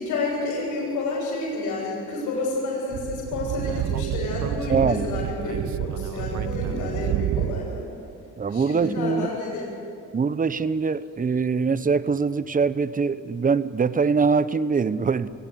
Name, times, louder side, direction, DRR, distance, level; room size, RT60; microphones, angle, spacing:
voice 1, 0.0-7.8 8.5-9.7, left 2 dB, 90° left, -8 dB, 7.9 m, -29 dB
Speech / Wind, 2.9-7.8, right 11 dB, 65° right, 0.8 m, -29 dB
voice 2, 4.7-5.0 8.4-9.3 10.1-15.3, right 5 dB, 30° right, 15 dB, 0.9 m, -23 dB
24.0 x 17.0 x 9.9 m, 2.7 s
cardioid pair, 90°, 30 cm